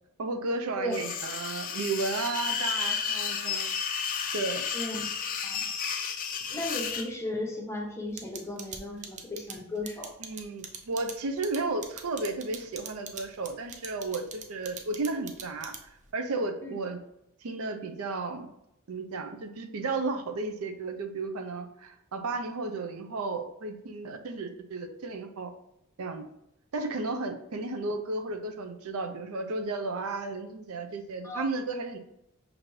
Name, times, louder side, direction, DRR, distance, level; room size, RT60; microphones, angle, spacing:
voice 1, 0.2-3.7 4.3-4.7 10.2-15.7 16.1-17.0 17.4-18.5 18.9-25.5 26.0-26.2 26.7-32.0, right 3 dB, 85° right, 7 dB, 0.5 m, -33 dB
sound 1, 0.9-7.1, left 7 dB, 40° left, 0.3 m, -32 dB
voice 2, 6.5-10.1 16.6-16.7 31.2-31.4, left 1 dB, 10° left, -1 dB, 0.7 m, -35 dB
sound 2, 8.2-16.1, right 6 dB, 35° right, 0.4 m, -41 dB
5.9 x 2.6 x 3.1 m, 0.81 s
head